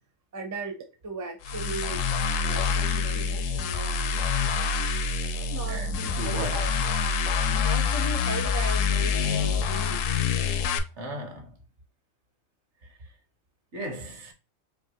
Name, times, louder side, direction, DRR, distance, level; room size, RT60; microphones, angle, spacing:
voice 1, 0.3-2.1 2.3-4.3 5.3-6.7 7.4-10.1, right 3 dB, 20° right, 0.5 m, -37 dB
sound 1, 1.4-10.8, left 5 dB, 75° left, 0.9 m, -26 dB
voice 2, 5.7-6.7 11.0-11.6 13.7-14.3, right 1 dB, 60° right, 1.3 m, -36 dB
4.6 x 2.7 x 2.8 m
omnidirectional pair, 1.4 m